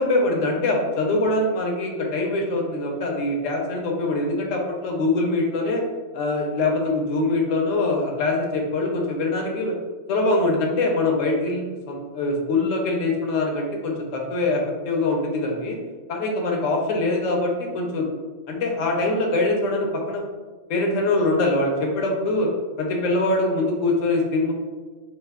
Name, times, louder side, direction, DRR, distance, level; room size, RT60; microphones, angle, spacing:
voice 1, 0.0-5.8 6.1-9.7 10.1-15.8 16.1-18.1 18.5-20.2 20.7-22.5 22.8-24.5, left 2 dB, 70° left, 1 dB, 0.9 m, -23 dB
2.5 x 2.2 x 3.4 m, 1.4 s
omnidirectional pair, 1.4 m